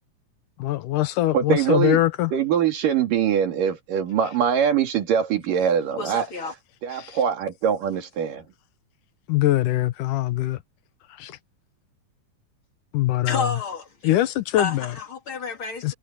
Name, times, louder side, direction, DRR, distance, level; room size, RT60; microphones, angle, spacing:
voice 1, 0.6-2.3 7.0-7.2 9.3-10.6 11.2-11.4 12.9-13.6 14.0-14.9 15.8-15.9, left 15 dB, 75° left, 2.5 m, -23 dB
voice 2, 1.3-2.0 2.3-6.3 6.8-8.4, right 8 dB, 85° right, 4.1 m, -23 dB
voice 3, 6.0-6.5 13.3-14.1 14.6-15.9, left 4 dB, 40° left, 3.2 m, -30 dB
omnidirectional pair, 3.7 m